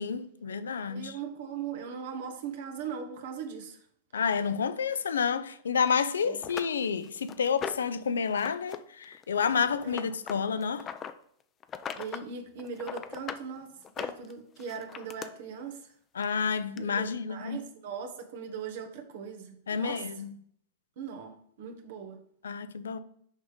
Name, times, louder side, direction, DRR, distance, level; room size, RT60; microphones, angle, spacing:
voice 1, 0.0-1.2 4.1-10.9 16.1-17.6 19.7-20.3 22.4-23.0, left 6 dB, 90° left, 0.5 m, -30 dB
voice 2, 0.9-3.8 6.2-6.4 9.8-10.0 12.0-15.9 16.8-20.0 21.0-22.2, right 6 dB, 65° right, 1.4 m, -39 dB
sound 1, 5.9-6.0 6.4-8.0 8.4-8.8 9.0-11.1 11.6-12.3 12.6-13.4 13.8-15.3 16.2-16.3 16.8-16.9, left 8 dB, 25° left, 0.6 m, -39 dB
6.4 x 5.0 x 5.0 m
hypercardioid pair, 115°, 0 cm